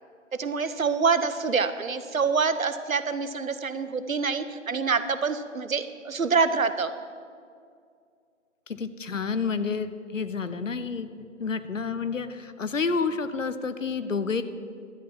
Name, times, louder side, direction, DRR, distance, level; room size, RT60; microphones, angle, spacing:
voice 1, 0.4-6.9, right 5 dB, 80° right, 12 dB, 0.9 m, -26 dB
voice 2, 8.7-14.4, left 5 dB, 70° left, 12 dB, 0.9 m, -29 dB
12.0 x 8.3 x 5.8 m, 2.3 s
figure-of-eight pair, 165°, 40 cm